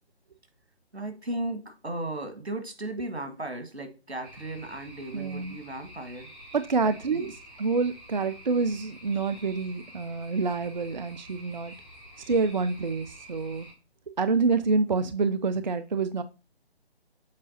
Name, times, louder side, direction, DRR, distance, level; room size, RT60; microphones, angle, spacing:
voice 1, 0.9-6.3 6.8-7.3, right 1 dB, 85° right, 1.8 m, -36 dB
sound 1, 4.2-13.7, right 1 dB, 25° right, 3.2 m, -48 dB
voice 2, 5.1-5.6 6.5-11.7 12.3-13.7 14.2-16.2, right 4 dB, 45° right, 0.4 m, -27 dB
7.5 x 4.9 x 2.8 m
figure-of-eight pair, 145°, 32 cm